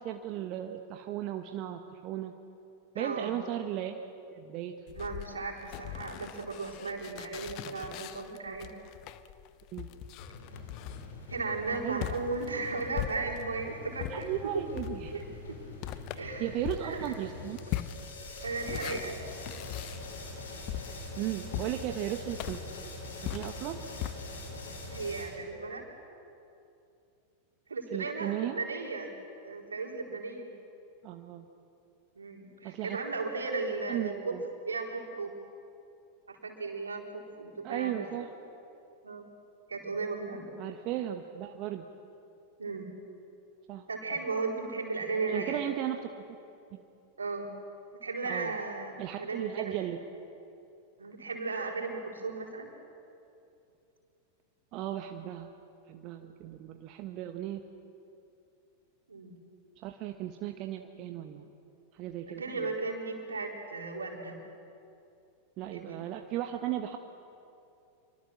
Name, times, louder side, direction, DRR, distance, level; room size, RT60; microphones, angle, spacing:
voice 1, 0.0-2.3 2.9-4.0 4.3-4.8 9.7-9.9 11.8-12.1 14.1-15.1 16.4-17.6 21.2-22.6 23.2-23.8 27.9-28.6 31.0-31.5 32.6-33.0 33.9-34.4 37.6-38.3 40.6-41.8 43.7-43.8 45.3-46.2 46.7-46.8 48.2-48.5 49.0-50.0 54.7-55.5 55.9-57.6 59.8-61.5 61.9-62.7 65.6-67.0, right 12 dB, 40° right, 6 dB, 1.3 m, -36 dB
voice 2, 2.9-3.3 4.9-8.7 11.3-14.6 15.1-15.6 16.2-17.1 18.4-19.2 24.9-25.9 27.7-29.1 29.4-30.5 32.2-34.3 34.7-35.3 36.3-38.3 39.0-39.3 39.7-40.5 42.6-42.9 43.9-45.6 47.2-47.5 48.0-49.8 51.0-52.7 59.1-59.4 62.4-64.4 65.7-66.0, right 3 dB, 75° right, 1 dB, 4.3 m, -36 dB
sound 1, 4.9-13.6 14.0-24.1, left 13 dB, 40° left, 1.0 m, -41 dB
sound 2, 10.2-25.2, left 2 dB, 65° left, 6.3 m, -44 dB
28.0 x 24.0 x 7.6 m, 2.7 s
figure-of-eight pair, 90°, 0 cm